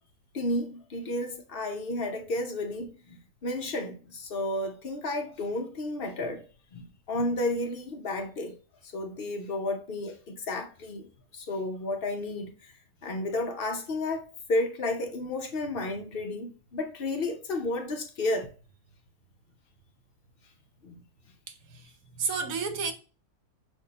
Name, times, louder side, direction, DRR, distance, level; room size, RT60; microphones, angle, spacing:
voice 1, 0.3-6.4 6.7-8.5 8.8-11.1 11.3-12.7 13.0-18.5 20.8-21.0, left 2 dB, 50° left, 0.7 m, -32 dB
voice 2, 21.5-22.9, right 5 dB, 65° right, 1.2 m, -32 dB
5.9 x 2.6 x 2.8 m
omnidirectional pair, 1.7 m